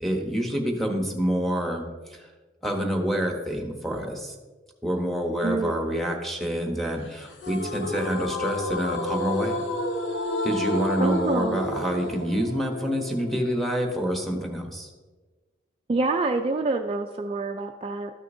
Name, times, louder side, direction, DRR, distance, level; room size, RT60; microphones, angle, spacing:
voice 1, 0.0-2.3 2.6-4.3 4.8-9.6 10.4-14.9, equal, ahead, 2 dB, 1.0 m, -27 dB
sound 1, 7.4-14.5, left 1 dB, 90° left, 0.9 m, -31 dB
voice 2, 11.0-11.6 15.9-18.1, right 3 dB, 30° right, 4 dB, 0.3 m, -26 dB
13.0 x 6.4 x 2.7 m, 1.3 s
head